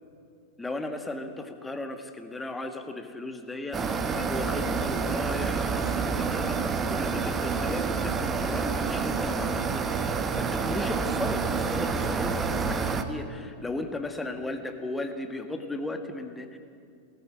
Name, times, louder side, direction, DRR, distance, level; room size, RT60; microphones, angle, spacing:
voice 1, 0.6-6.6 6.9-16.6, left 2 dB, 10° left, 6 dB, 1.7 m, -36 dB
sound 1, 3.7-13.0, right 5 dB, 20° right, 1.2 m, -28 dB
18.5 x 14.5 x 9.8 m, 2.4 s
figure-of-eight pair, 90°, 0 cm